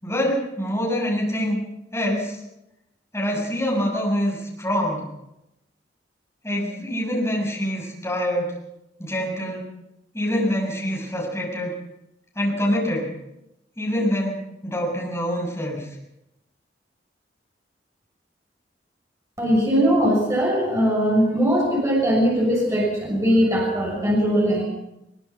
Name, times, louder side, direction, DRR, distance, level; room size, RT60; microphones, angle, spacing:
voice 1, 0.0-1.6 1.9-2.4 3.1-5.1 6.4-8.5 9.0-9.8 10.1-11.7 12.3-13.1 13.8-15.9, equal, 15° left, -2 dB, 6.8 m, -25 dB
voice 2, 19.4-24.6, equal, 20° right, -3 dB, 6.5 m, -20 dB
22.0 x 21.5 x 5.9 m, 0.85 s
head